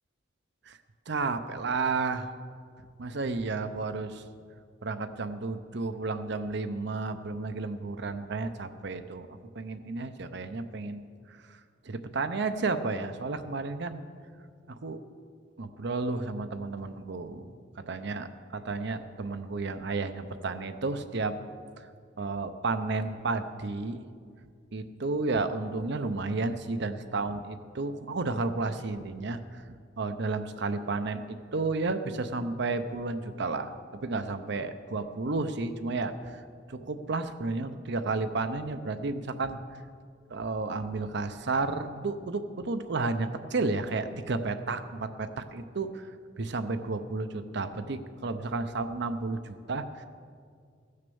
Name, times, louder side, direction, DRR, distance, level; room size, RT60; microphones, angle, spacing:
voice 1, 1.1-2.3 3.0-4.2 4.8-9.3 9.5-11.0 11.3-11.6 11.8-14.0 14.7-15.0 15.6-17.5 17.9-18.3 18.5-21.4 21.8-21.9 22.2-24.0 24.7-36.4 36.7-39.6 40.3-46.1 46.4-50.0, right 3 dB, 65° right, 9 dB, 0.7 m, -32 dB
16.0 x 6.7 x 7.0 m, 2.1 s
head